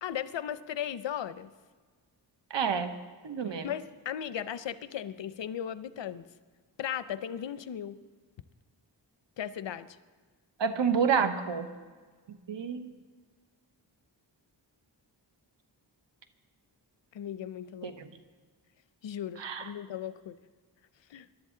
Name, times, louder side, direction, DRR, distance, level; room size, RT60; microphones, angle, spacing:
voice 1, 0.0-1.5 3.6-6.3 6.8-8.0 9.4-9.9 17.1-17.9 19.0-20.3 21.1-21.3, left 9 dB, 90° left, 14 dB, 0.6 m, -36 dB
voice 2, 2.5-2.9 3.2-3.7 10.6-11.7 12.5-12.9 17.8-18.1 19.4-19.7, right 6 dB, 90° right, 9 dB, 1.0 m, -29 dB
21.5 x 12.0 x 3.8 m, 1.5 s
wide cardioid pair, 75°, 43 cm